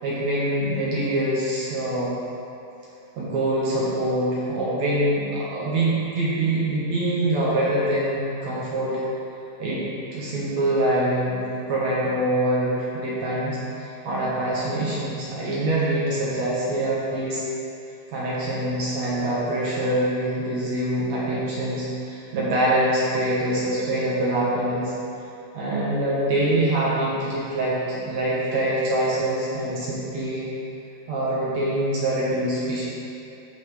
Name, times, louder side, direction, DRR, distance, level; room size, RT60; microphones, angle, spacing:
voice 1, 0.0-2.2 3.2-9.0 9.6-9.8 10.1-11.4 11.7-17.4 18.1-24.9 25.5-30.5 31.1-32.8, right 1 dB, 60° right, -7 dB, 2.0 m, -24 dB
13.5 x 5.5 x 3.2 m, 2.7 s
omnidirectional pair, 4.6 m